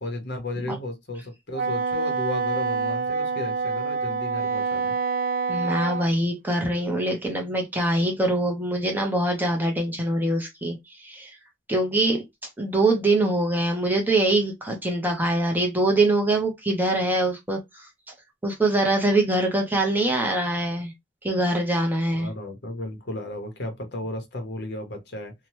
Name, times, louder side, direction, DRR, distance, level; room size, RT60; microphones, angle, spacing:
voice 1, 0.0-4.9 22.1-25.3, left 2 dB, 65° left, 0.9 m, -34 dB
Wind instrument woodwind instrument, 1.5-6.1, right 5 dB, 50° right, 0.4 m, -26 dB
voice 2, 5.5-11.3 11.7-12.2 12.6-17.9 18.4-20.9 21.2-22.3, right 2 dB, 10° right, 0.7 m, -23 dB
2.8 x 2.2 x 3.0 m
head